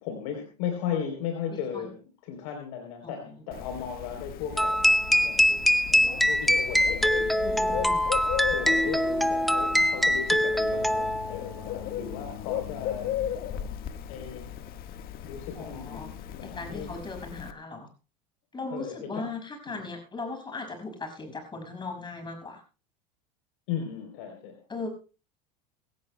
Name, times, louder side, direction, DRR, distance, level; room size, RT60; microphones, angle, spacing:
voice 1, 0.0-2.0 2.2-4.9 5.2-7.5 8.5-13.1 14.1-14.6 15.2-16.9 18.7-19.3 19.7-19.9 23.7-24.7, left 8 dB, 65° left, 4 dB, 3.5 m, -36 dB
voice 2, 1.5-1.9 3.0-3.2 7.4-8.1 15.6-16.1 16.4-17.9 18.5-22.6 24.7-24.9, left 3 dB, 20° left, 5 dB, 6.1 m, -38 dB
Bird, 3.5-17.5, left 10 dB, 45° left, 1.5 m, -37 dB
sound 1, 4.6-11.4, equal, ahead, 0.6 m, -23 dB
22.5 x 17.0 x 2.2 m, 0.35 s
hypercardioid pair, 85°, 21 cm